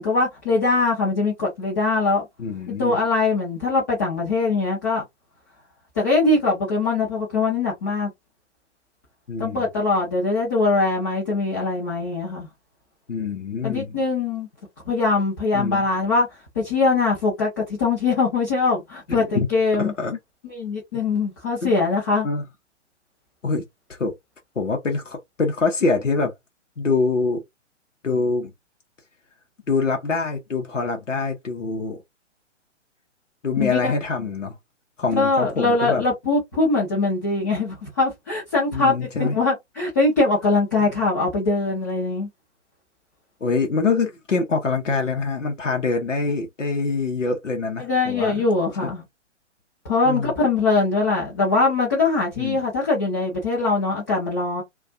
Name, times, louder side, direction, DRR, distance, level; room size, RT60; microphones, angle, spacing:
voice 1, 0.0-2.2 2.7-5.0 6.0-8.1 9.4-12.5 13.6-14.5 14.9-16.3 16.6-19.9 20.5-22.3 33.6-33.9 35.1-42.3 47.8-49.0 49.8-54.6, left 3 dB, 15° left, 0.5 m, -22 dB
voice 2, 2.4-3.0 9.3-9.6 13.1-14.0 15.5-15.9 19.1-19.5 19.8-20.2 21.6-21.7 22.2-22.4 23.4-23.6 23.9-24.2 24.6-26.3 26.8-27.4 28.0-28.5 29.7-32.0 33.4-34.6 35.0-36.0 38.7-39.4 43.4-48.4 48.8-48.9 50.0-50.3 52.4-52.6, left 4 dB, 85° left, 0.7 m, -25 dB
2.4 x 2.2 x 2.5 m
figure-of-eight pair, 125°, 36 cm